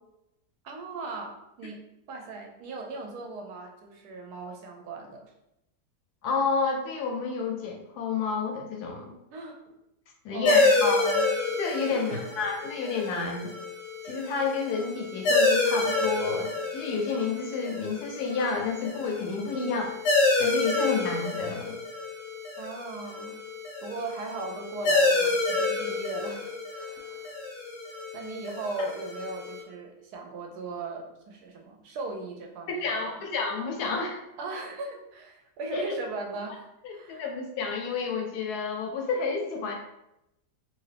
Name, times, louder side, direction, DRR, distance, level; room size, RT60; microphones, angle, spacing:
voice 1, 0.6-1.8 2.1-5.3 9.3-9.6 10.3-11.3 11.9-12.3 22.6-23.4 23.8-27.4 28.1-33.2 34.4-37.2, right 3 dB, 75° right, 2 dB, 1.0 m, -38 dB
voice 2, 6.2-9.1 10.2-11.0 11.6-13.5 14.0-20.0 20.4-21.8 32.7-34.2 35.7-36.0 36.8-39.7, left 4 dB, 75° left, 2 dB, 1.0 m, -30 dB
sound 1, 10.4-29.6, left 3 dB, 55° left, 0.7 m, -28 dB
2.8 x 2.5 x 3.2 m, 0.85 s
omnidirectional pair, 1.8 m